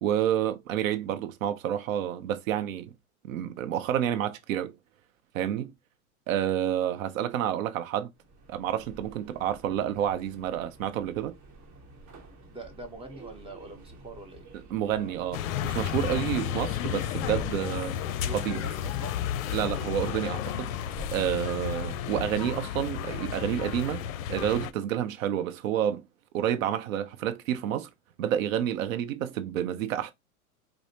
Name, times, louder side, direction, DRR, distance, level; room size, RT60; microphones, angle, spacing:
voice 1, 0.0-2.9 3.2-4.7 5.3-5.7 6.3-8.1 8.5-11.3 14.7-17.9 18.3-18.6 19.5-26.0 26.3-27.9 28.2-30.1, right 10 dB, 65° right, 0.6 m, -29 dB
Subway metro underground, 8.2-22.5, right 3 dB, 30° right, 1.0 m, -49 dB
voice 2, 12.5-14.5 15.0-15.2 16.1-16.3 17.6-17.7 18.2-19.1, right 2 dB, 15° right, 0.8 m, -43 dB
sound 1, 15.3-24.7, left 10 dB, 65° left, 0.5 m, -32 dB
4.8 x 2.0 x 2.7 m
hypercardioid pair, 120°, 43 cm